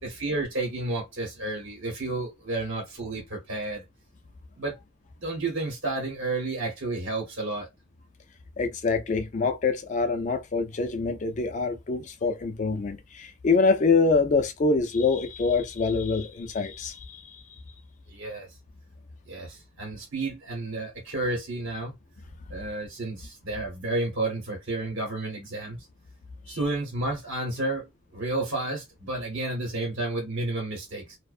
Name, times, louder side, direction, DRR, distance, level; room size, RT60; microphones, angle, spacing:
voice 1, 0.0-3.8 4.6-4.7 5.2-7.7 18.1-18.5 19.3-21.9 22.5-25.9 26.5-31.2, right 2 dB, 55° right, 0.9 m, -31 dB
voice 2, 8.6-17.4, left 4 dB, 35° left, 0.4 m, -25 dB
2.4 x 2.1 x 2.4 m
head